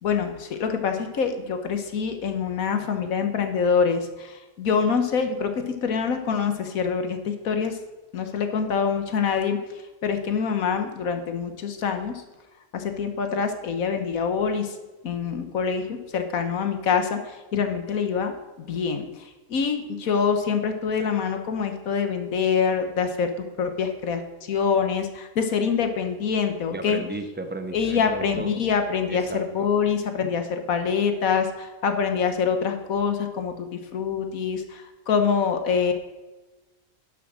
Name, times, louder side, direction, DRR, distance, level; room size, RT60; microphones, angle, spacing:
voice 1, 0.0-7.8 8.1-9.6 10.0-12.2 12.7-14.8 15.0-27.0 27.7-35.9, left 6 dB, 70° left, 6 dB, 1.4 m, -25 dB
voice 2, 26.7-28.5 29.1-29.4, right 2 dB, 10° right, 7 dB, 0.5 m, -34 dB
11.0 x 6.1 x 6.1 m, 1.2 s
omnidirectional pair, 1.5 m